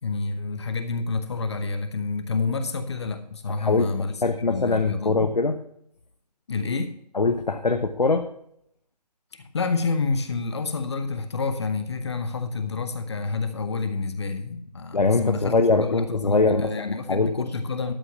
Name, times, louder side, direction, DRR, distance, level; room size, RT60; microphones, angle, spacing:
voice 1, 0.0-4.2 4.5-5.3 6.5-6.9 9.3-17.9, left 4 dB, 40° left, 9 dB, 1.1 m, -28 dB
voice 2, 3.5-3.9 4.2-5.6 7.1-8.3 14.9-17.5, left 3 dB, 80° left, 7 dB, 1.1 m, -22 dB
12.5 x 5.7 x 6.0 m, 0.72 s
figure-of-eight pair, 155°, 21 cm